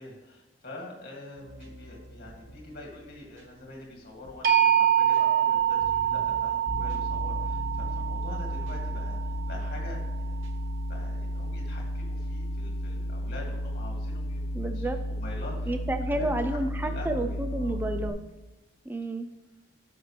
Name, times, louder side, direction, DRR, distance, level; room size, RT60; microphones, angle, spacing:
voice 1, 0.0-10.4 10.9-14.4 14.7-15.8 16.1-17.8, left 2 dB, 45° left, -2 dB, 2.3 m, -45 dB
sound 1, 1.4-10.6, right 1 dB, 80° right, 1.0 m, -48 dB
sound 2, 4.4-10.4, right 10 dB, 45° right, 0.7 m, -26 dB
sound 3, 6.7-18.1, equal, 90° left, 1.0 m, -33 dB
voice 2, 14.5-15.0 15.7-18.2 18.9-19.3, right 1 dB, 10° right, 7 dB, 0.4 m, -30 dB
10.5 x 6.0 x 3.3 m, 1.0 s
head